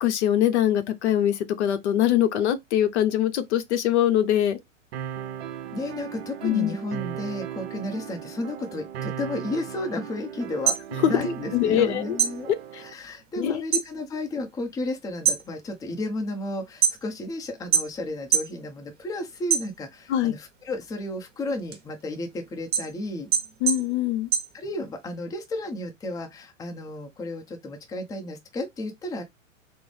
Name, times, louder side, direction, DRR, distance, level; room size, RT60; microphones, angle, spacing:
voice 1, 0.0-4.6 6.4-6.7 11.0-11.1 11.5-12.2 12.7-12.8 13.4-13.6 20.1-20.3 23.6-24.3, left 11 dB, 60° left, 0.7 m, -23 dB
sound 1, 4.9-12.9, right 9 dB, 50° right, 0.6 m, -37 dB
voice 2, 5.7-10.7 11.0-12.5 12.8-23.3 24.5-29.2, left 1 dB, 10° left, 0.6 m, -33 dB
sound 2, 10.5-11.8 12.1-13.9 14.3-14.7 15.1-17.3 17.7-18.6 18.9-20.1 20.6-25.1, right 7 dB, 25° right, 1.1 m, -26 dB
3.7 x 2.0 x 3.2 m
hypercardioid pair, 110°, 39 cm